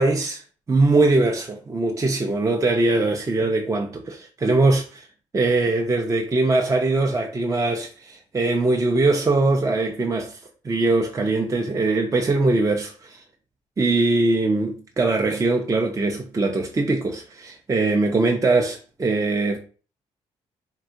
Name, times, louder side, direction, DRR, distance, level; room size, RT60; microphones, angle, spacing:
voice 1, 0.0-5.1 5.3-10.4 10.6-13.2 13.8-19.6, right 2 dB, 25° right, 0.5 m, -21 dB
3.6 x 2.3 x 2.6 m
supercardioid pair, 65°, 13 cm